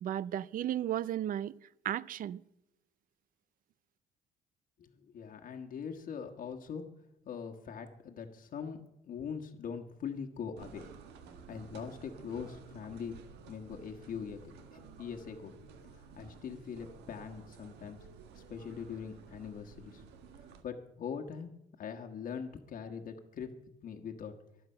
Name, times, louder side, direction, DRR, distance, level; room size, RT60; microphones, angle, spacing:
voice 1, 0.0-1.5 1.8-2.4, right 11 dB, 55° right, 0.6 m, -34 dB
voice 2, 4.8-6.9 7.2-10.9 11.5-14.4 14.7-15.5 16.2-18.0 18.3-20.0 20.6-21.5 21.8-23.5 23.8-24.3, left 6 dB, 55° left, 1.5 m, -42 dB
sound 1, 10.6-20.6, right 5 dB, 85° right, 1.7 m, -53 dB
24.0 x 8.0 x 5.7 m
cardioid pair, 110°, 17 cm